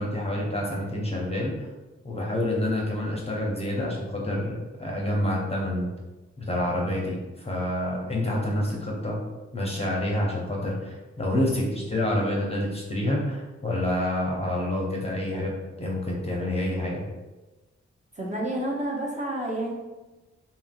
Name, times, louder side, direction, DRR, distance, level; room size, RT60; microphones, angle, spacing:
voice 1, 0.0-1.5 2.0-5.9 6.4-9.2 9.5-15.5 15.8-17.0, left 1 dB, 20° left, -3 dB, 0.7 m, -28 dB
voice 2, 18.2-19.7, right 1 dB, 25° right, -4 dB, 0.8 m, -29 dB
2.8 x 2.5 x 2.5 m, 1.1 s
cardioid pair, 45°, 29 cm